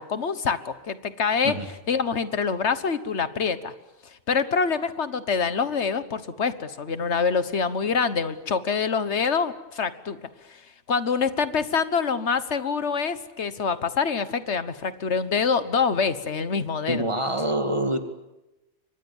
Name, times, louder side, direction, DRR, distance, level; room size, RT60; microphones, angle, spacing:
voice 1, 0.0-1.6 1.9-3.7 4.0-10.2 10.5-10.6 10.9-17.1, left 5 dB, 85° left, 13 dB, 1.6 m, -25 dB
voice 2, 16.9-18.0, right 1 dB, 25° right, 7 dB, 2.2 m, -25 dB
29.5 x 24.5 x 7.3 m, 0.99 s
omnidirectional pair, 1.1 m